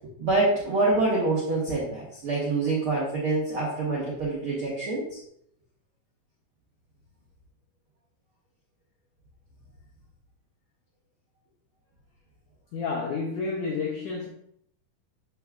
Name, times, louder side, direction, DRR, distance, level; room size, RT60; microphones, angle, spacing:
voice 1, 0.2-5.2, right 2 dB, 70° right, -6 dB, 1.3 m, -26 dB
voice 2, 12.7-14.3, left 4 dB, 80° left, -2 dB, 1.8 m, -30 dB
12.0 x 4.7 x 2.4 m, 0.71 s
omnidirectional pair, 4.7 m